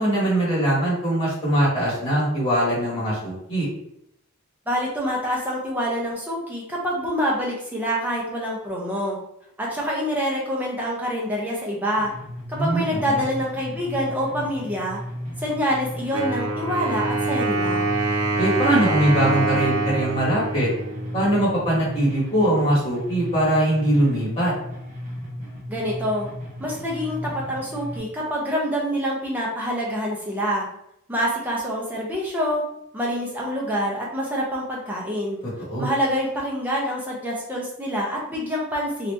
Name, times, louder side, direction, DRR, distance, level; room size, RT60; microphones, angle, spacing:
voice 1, 0.0-3.7 12.5-13.2 18.4-20.7 21.1-24.5 35.6-35.9, right 1 dB, 25° left, -8 dB, 1.5 m, -22 dB
voice 2, 4.7-9.2 9.6-12.1 12.5-15.0 15.4-17.9 25.7-26.3 26.6-30.7 31.1-32.6 32.9-35.4 35.8-39.1, equal, 10° right, -4 dB, 0.7 m, -26 dB
sound 1, 12.0-28.0, left 1 dB, 35° right, 0.9 m, -36 dB
Wind instrument woodwind instrument, 16.1-21.8, right 3 dB, 75° right, 0.8 m, -25 dB
2.9 x 2.7 x 3.4 m, 0.75 s
head